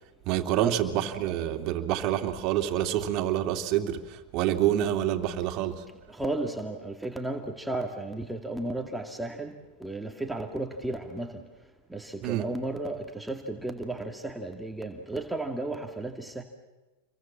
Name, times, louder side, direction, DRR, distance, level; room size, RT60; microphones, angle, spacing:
voice 1, 0.3-5.8 12.2-12.5, right 11 dB, 50° right, 5 dB, 2.6 m, -27 dB
voice 2, 6.1-11.4 11.9-16.4, right 2 dB, 5° right, 2 dB, 2.2 m, -34 dB
29.0 x 23.0 x 7.5 m, 1.1 s
hypercardioid pair, 110°, 0 cm